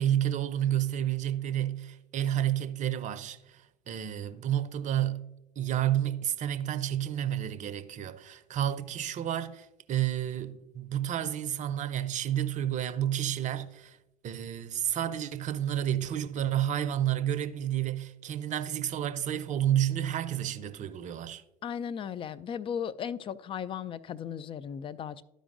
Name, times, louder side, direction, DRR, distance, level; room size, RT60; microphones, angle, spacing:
voice 1, 0.0-3.6 3.9-5.2 5.6-14.0 14.2-21.4, right 11 dB, 40° right, 0.6 m, -30 dB
voice 2, 21.6-25.2, left 8 dB, 25° left, 0.4 m, -36 dB
12.0 x 5.1 x 2.5 m
hypercardioid pair, 75°, 20 cm